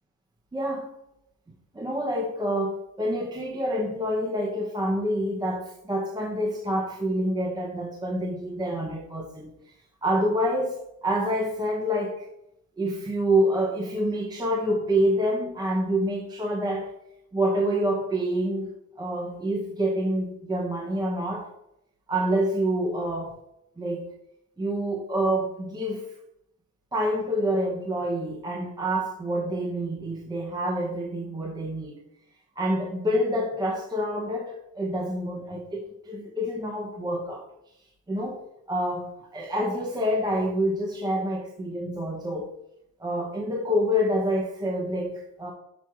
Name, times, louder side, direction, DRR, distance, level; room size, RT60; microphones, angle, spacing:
voice 1, 0.5-0.9 1.7-9.5 10.0-12.3 12.8-16.9 17.3-21.5 22.1-23.4 23.8-24.1 24.6-26.1 26.9-32.0 32.6-37.5 38.1-42.5 43.0-45.5, equal, 15° right, 1 dB, 0.7 m, -27 dB
5.9 x 5.9 x 4.7 m, 0.80 s
cardioid pair, 170°, 31 cm